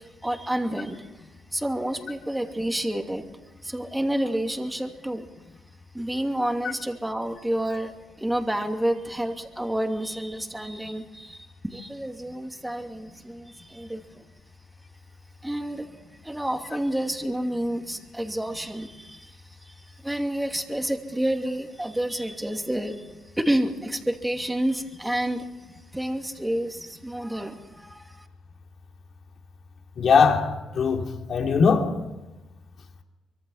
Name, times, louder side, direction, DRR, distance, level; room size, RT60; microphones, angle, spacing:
voice 1, 0.0-3.2 3.6-5.3 5.9-7.9 8.2-14.3 15.4-15.9 16.2-25.5 25.9-28.3, right 1 dB, 5° right, 4 dB, 2.7 m, -29 dB
voice 2, 30.0-31.9, left 5 dB, 55° left, 3 dB, 3.1 m, -21 dB
25.0 x 23.5 x 5.8 m, 1.1 s
cardioid pair, 90°, 0 cm